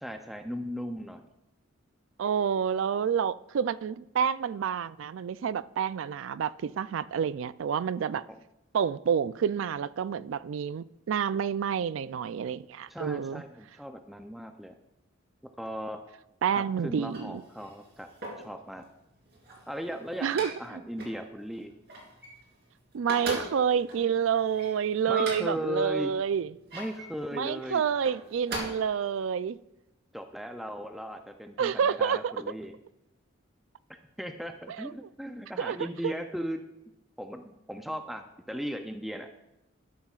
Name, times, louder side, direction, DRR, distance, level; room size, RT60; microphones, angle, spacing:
voice 1, 0.0-1.2 12.9-14.7 15.6-16.0 16.5-18.1 18.4-18.8 19.7-21.7 25.1-26.1 26.7-27.8 30.1-32.7 33.9-36.7 37.2-39.6, equal, ahead, 0.4 m, -37 dB
voice 2, 2.2-8.2 8.7-13.4 16.4-17.4 20.2-20.5 22.9-26.5 27.3-29.6 31.6-32.3 34.7-34.9 35.6-35.8 36.0-36.1, right 7 dB, 75° right, 0.3 m, -28 dB
sound 1, 16.9-18.5 19.2-20.7 21.0-21.2 21.5-22.7 22.9-25.7 26.4-27.1 27.9-28.6, right 2 dB, 50° right, 3.1 m, -39 dB
12.5 x 11.5 x 2.4 m
head